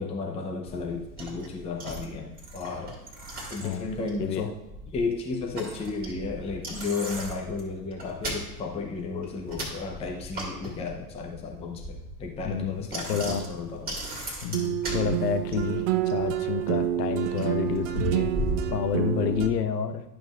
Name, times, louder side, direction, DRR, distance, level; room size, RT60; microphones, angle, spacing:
voice 1, 0.0-2.9 3.5-4.5 4.9-13.9, left 4 dB, 15° left, 1 dB, 0.7 m, -33 dB
Bicycle, 0.7-19.5, right 1 dB, 20° right, 2.0 m, -38 dB
voice 2, 3.6-3.9 4.2-4.5 10.8-10.9 12.4-13.5 14.4-18.3 18.7-20.0, left 7 dB, 75° left, 10 dB, 0.8 m, -29 dB
sound 1, 14.5-19.5, right 12 dB, 50° right, 0.6 m, -28 dB
11.0 x 5.9 x 2.5 m, 1.0 s
hypercardioid pair, 100°, 48 cm